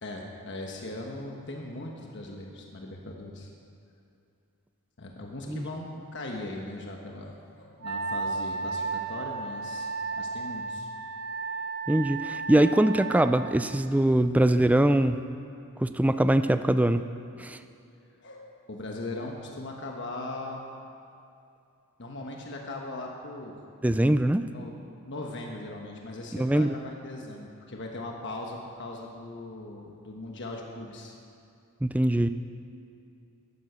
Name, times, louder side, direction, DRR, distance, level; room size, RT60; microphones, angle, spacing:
voice 1, 0.0-3.5 5.0-10.9 18.2-20.6 22.0-23.5 24.5-24.7 25.0-31.1, left 2 dB, 55° left, 0 dB, 1.2 m, -39 dB
Wind instrument woodwind instrument, 7.8-13.4, right 4 dB, 70° right, 0.7 m, -34 dB
voice 2, 11.9-15.2 15.8-17.0 17.4-17.6 23.8-24.5 26.4-26.8 31.8-32.3, right 1 dB, 5° right, 10 dB, 0.3 m, -22 dB
12.5 x 11.0 x 6.7 m, 2.6 s
head